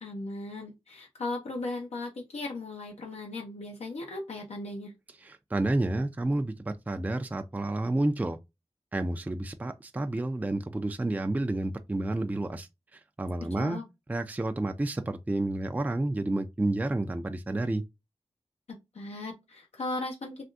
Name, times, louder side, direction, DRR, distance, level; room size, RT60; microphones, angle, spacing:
voice 1, 0.0-4.9 13.5-13.8 18.9-20.5, left 2 dB, 85° left, 0.8 m, -37 dB
voice 2, 5.2-8.4 8.9-13.8 14.1-17.8, right 2 dB, 15° right, 0.3 m, -30 dB
3.4 x 2.5 x 2.4 m
wide cardioid pair, 80°, 11 cm